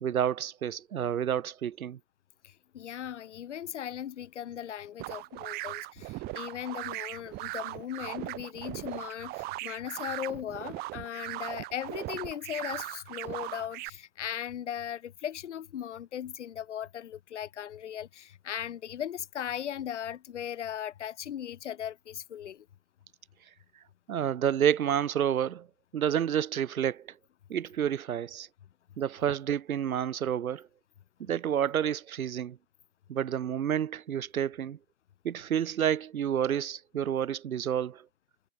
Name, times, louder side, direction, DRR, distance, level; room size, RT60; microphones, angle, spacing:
voice 1, 0.0-2.0 24.1-25.7 25.9-27.1 27.5-28.5 29.0-30.7 31.2-32.6 33.1-34.8 35.2-38.0, right 9 dB, 85° right, 0.8 m, -29 dB
voice 2, 2.4-22.7, left 10 dB, 55° left, 2.5 m, -38 dB
sound 1, 5.0-13.9, right 21 dB, 20° right, 2.8 m, -39 dB
hypercardioid pair, 145°, 41 cm